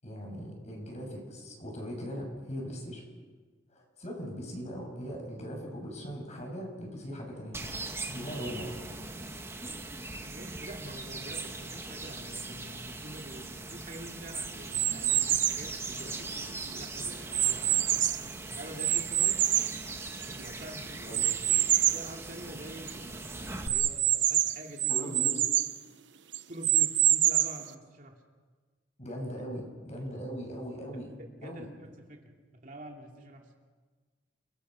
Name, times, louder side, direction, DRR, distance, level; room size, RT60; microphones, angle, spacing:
voice 1, 0.0-3.0 3.7-8.7 18.1-18.4 21.1-21.3 24.9-25.3 29.0-31.1 31.4-31.7, equal, 40° left, 1 dB, 6.6 m, -40 dB
sound 1, 7.5-23.7, right 3 dB, 15° right, 1.6 m, -40 dB
voice 2, 10.2-16.5 16.7-18.1 18.5-19.4 20.3-21.2 21.7-25.1 26.5-28.2 31.4-33.4, right 1 dB, 50° right, 1 dB, 2.8 m, -46 dB
sound 2, 14.7-15.7 16.3-18.3 18.8-20.5 21.1-22.1 22.6-22.7 22.9-23.0 23.7-25.8 26.3-27.7, right 12 dB, 80° right, 1.0 m, -26 dB
29.5 x 20.5 x 6.4 m, 1.4 s
head